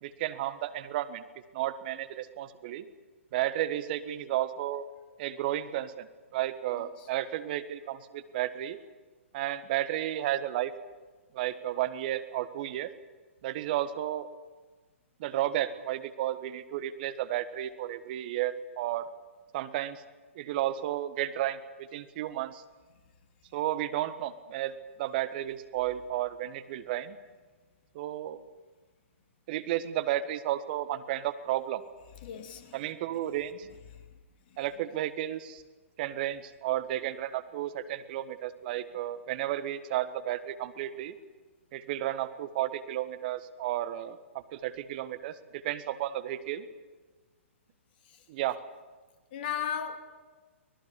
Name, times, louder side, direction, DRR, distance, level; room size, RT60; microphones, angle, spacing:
voice 1, 0.0-1.2 1.5-2.9 3.3-4.8 5.2-8.8 9.3-10.7 11.3-12.9 13.4-14.3 15.2-19.1 19.5-20.0 20.3-22.6 23.5-27.2 27.9-28.4 29.5-31.8 32.7-33.7 34.6-35.6 36.0-41.1 41.7-44.2 44.5-46.7 48.3-48.6, right 13 dB, 45° right, 1.4 m, -32 dB
voice 2, 32.2-32.9 48.1-48.2 49.3-50.0, left 9 dB, 45° left, 2.6 m, -36 dB
24.5 x 18.5 x 8.3 m
figure-of-eight pair, 120°, 7 cm